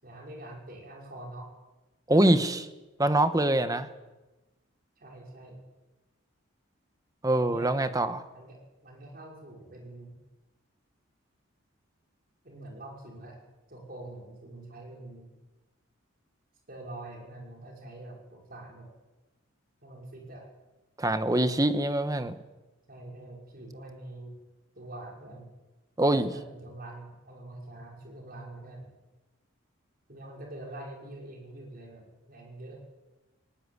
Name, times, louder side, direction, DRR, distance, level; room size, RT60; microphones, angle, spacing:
voice 1, 0.0-1.5 5.0-5.6 7.4-7.7 8.3-10.1 12.4-13.4 13.7-15.3 16.7-18.9 19.8-20.5 22.9-24.3 24.7-25.5 26.0-28.9 30.1-32.8, right 1 dB, 45° right, 0 dB, 5.9 m, -45 dB
voice 2, 2.1-2.7 3.0-3.9 7.2-8.2 21.0-22.4 26.0-26.3, right 1 dB, 15° right, 11 dB, 1.2 m, -24 dB
19.0 x 18.5 x 9.9 m, 1.1 s
head